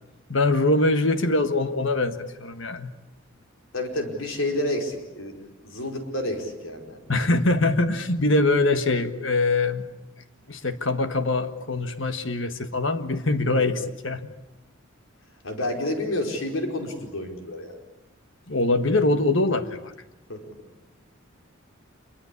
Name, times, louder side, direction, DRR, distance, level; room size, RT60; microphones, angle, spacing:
voice 1, 0.3-2.9 7.1-9.9 10.5-14.2 18.5-19.9, left 2 dB, 65° left, 9 dB, 1.6 m, -23 dB
voice 2, 3.7-7.0 13.6-13.7 15.4-17.8 20.3-20.4, left 1 dB, 85° left, 4 dB, 5.0 m, -30 dB
27.0 x 23.5 x 8.5 m, 0.98 s
head